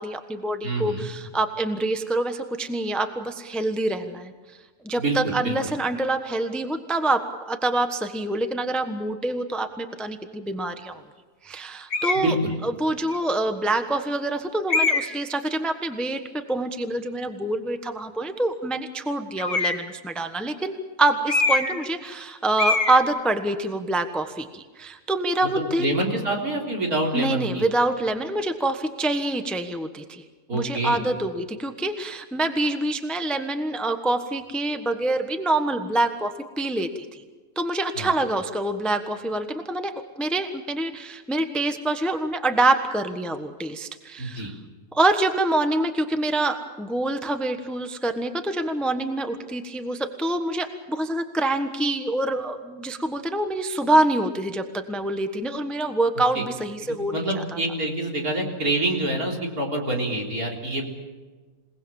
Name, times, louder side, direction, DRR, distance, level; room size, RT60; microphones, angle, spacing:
voice 1, 0.0-4.3 4.8-7.2 7.5-11.0 11.4-12.4 12.6-26.0 27.1-30.2 30.5-37.2 37.5-44.5 44.9-57.4, right 2 dB, ahead, 7 dB, 1.1 m, -26 dB
voice 2, 0.6-1.1 5.0-5.5 12.1-12.6 25.8-27.7 30.5-31.0 38.0-38.1 44.2-44.5 56.3-56.4 57.1-60.9, right 2 dB, 60° right, 0 dB, 4.2 m, -26 dB
sound 1, 11.9-12.3 13.1-13.2 14.7-15.2 19.4-19.9 21.3-21.9 22.1-22.3 22.6-23.0, left 3 dB, 50° left, 1.9 m, -23 dB
28.0 x 19.0 x 7.2 m, 1.4 s
omnidirectional pair, 1.7 m